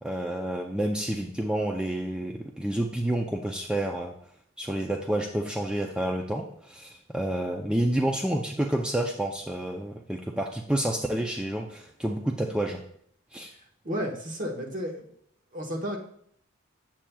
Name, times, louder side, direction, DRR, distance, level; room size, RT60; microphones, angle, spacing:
voice 1, 0.0-4.1 4.6-12.8 13.3-13.5, right 1 dB, 5° right, 1 dB, 0.4 m, -29 dB
voice 2, 13.8-15.0 15.5-16.0, equal, 40° right, 2 dB, 1.3 m, -32 dB
8.6 x 7.4 x 2.3 m, 0.65 s
head